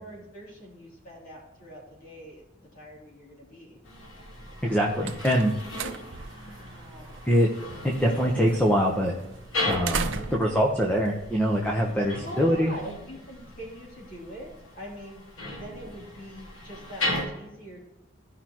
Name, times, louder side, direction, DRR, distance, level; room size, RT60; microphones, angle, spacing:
voice 1, 0.0-3.8 6.2-7.2 10.1-10.6 12.2-14.5 14.8-15.2 15.5-17.8, equal, 40° left, -4 dB, 3.1 m, -43 dB
sound 1, 3.8-17.2, left 2 dB, 80° left, 1.9 m, -37 dB
sound 2, 4.5-12.0, right 5 dB, 65° right, 0.7 m, -39 dB
voice 2, 4.6-5.5 7.2-7.5 7.8-9.1 9.7-12.7, equal, 5° left, -1 dB, 0.9 m, -23 dB
15.5 x 5.7 x 3.0 m, 0.95 s
head